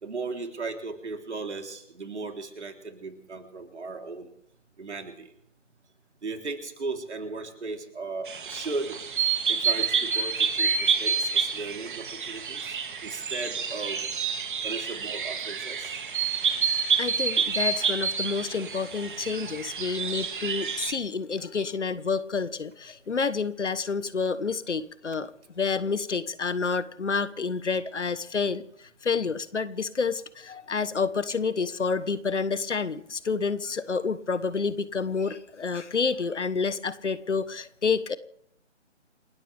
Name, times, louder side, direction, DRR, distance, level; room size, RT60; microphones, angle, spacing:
voice 1, 0.0-4.3 4.8-5.3 6.2-9.0 9.5-12.6 13.0-14.0 14.6-15.9, right 3 dB, 65° right, 4 dB, 3.8 m, -36 dB
sound 1, 8.3-20.9, right 6 dB, 40° right, 2.2 m, -28 dB
voice 2, 17.0-38.2, left 5 dB, 70° left, 16 dB, 1.3 m, -29 dB
29.0 x 13.5 x 3.5 m, 0.73 s
figure-of-eight pair, 145°, 37 cm